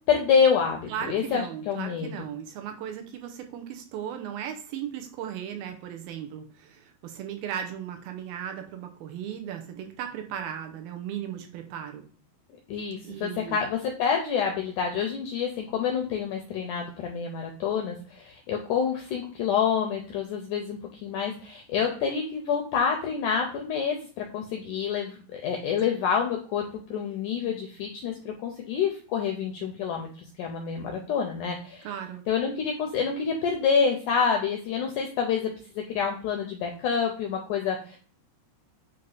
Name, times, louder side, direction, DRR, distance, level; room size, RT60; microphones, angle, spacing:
voice 1, 0.1-2.1 12.7-30.1 30.4-31.9 32.3-38.0, left 6 dB, 85° left, 2 dB, 1.8 m, -27 dB
voice 2, 0.9-12.0 13.0-13.6 31.8-32.2, right 9 dB, 80° right, 5 dB, 2.4 m, -36 dB
8.5 x 2.8 x 4.0 m, 0.41 s
omnidirectional pair, 4.4 m